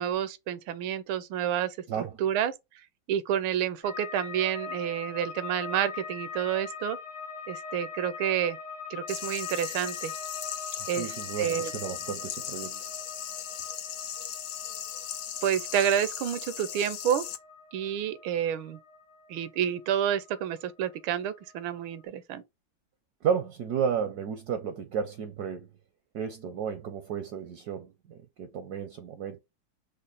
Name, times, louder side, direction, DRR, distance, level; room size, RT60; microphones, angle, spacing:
voice 1, 0.0-1.8 2.2-2.5 3.1-7.0 7.5-8.6 8.9-10.1 10.9-11.7 15.4-17.2 17.7-18.8 19.3-22.4, right 10 dB, 85° right, 1.4 m, -29 dB
sound 1, 3.8-21.0 21.2-22.0, left 5 dB, 65° left, 1.7 m, -42 dB
sound 2, 9.1-17.4, left 10 dB, 80° left, 0.7 m, -38 dB
voice 2, 10.8-12.9 23.2-25.7 26.1-29.4, right 7 dB, 70° right, 0.9 m, -33 dB
5.3 x 2.1 x 3.8 m
omnidirectional pair, 2.2 m